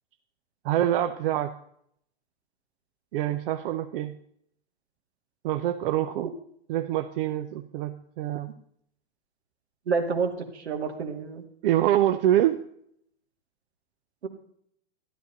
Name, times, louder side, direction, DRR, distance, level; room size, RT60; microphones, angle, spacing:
voice 1, 0.6-1.5 3.1-4.2 5.4-6.3 6.7-8.5 11.6-12.6, right 12 dB, 60° right, 7 dB, 0.8 m, -25 dB
voice 2, 9.9-11.4 14.2-14.3, right 5 dB, 85° right, 4 dB, 2.3 m, -29 dB
12.5 x 11.5 x 4.0 m, 0.69 s
hypercardioid pair, 115°, 32 cm